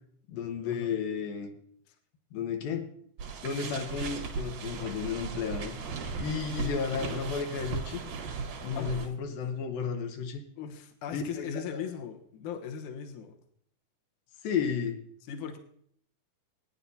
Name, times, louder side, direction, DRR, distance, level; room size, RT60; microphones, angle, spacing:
voice 1, 0.3-1.5 2.3-2.9 3.4-5.8 6.2-8.0 8.6-10.4 11.1-11.6 14.4-15.0, left 6 dB, 90° left, 5 dB, 2.8 m, -33 dB
sound 1, 3.2-9.1, right 5 dB, 80° right, 3.3 m, -37 dB
voice 2, 8.7-9.1 10.6-13.4 15.2-15.6, left 7 dB, 70° left, 3 dB, 2.5 m, -39 dB
21.0 x 9.9 x 2.8 m, 0.64 s
omnidirectional pair, 3.9 m